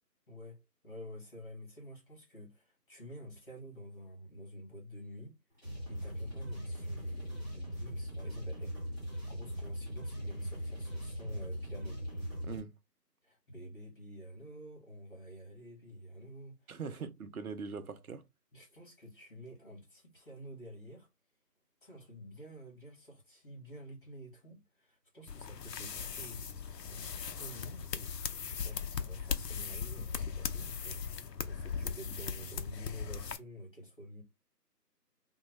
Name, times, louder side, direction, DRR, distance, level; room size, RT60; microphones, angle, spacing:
voice 1, 0.3-12.0 13.2-16.7 17.0-17.1 18.5-21.1 21.8-28.1 28.5-34.2, equal, 30° left, 1.6 m, -49 dB
sound 1, 5.5-12.6, equal, 10° right, 1.7 m, -40 dB
voice 2, 12.4-12.8 16.7-18.2, right 5 dB, 60° right, 0.5 m, -41 dB
sound 2, 25.3-33.4, left 6 dB, 80° left, 0.6 m, -39 dB
2.9 x 2.2 x 3.1 m
figure-of-eight pair, 170°, 49 cm